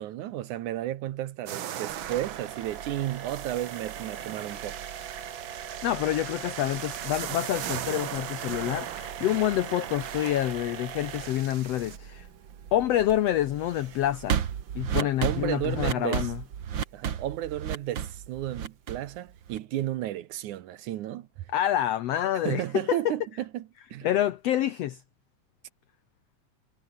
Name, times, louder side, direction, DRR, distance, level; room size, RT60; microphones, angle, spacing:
voice 1, 0.0-4.8 15.0-16.3 16.9-21.5 22.4-24.1, right 13 dB, 70° right, 2.3 m, -33 dB
sound 1, 1.5-12.0, right 10 dB, 90° right, 1.0 m, -39 dB
sound 2, 1.9-19.8, right 8 dB, 50° right, 1.5 m, -36 dB
voice 2, 5.6-12.3 12.7-14.4 14.7-16.4 21.5-23.1 24.0-25.0, left 12 dB, 80° left, 1.4 m, -27 dB
omnidirectional pair, 3.9 m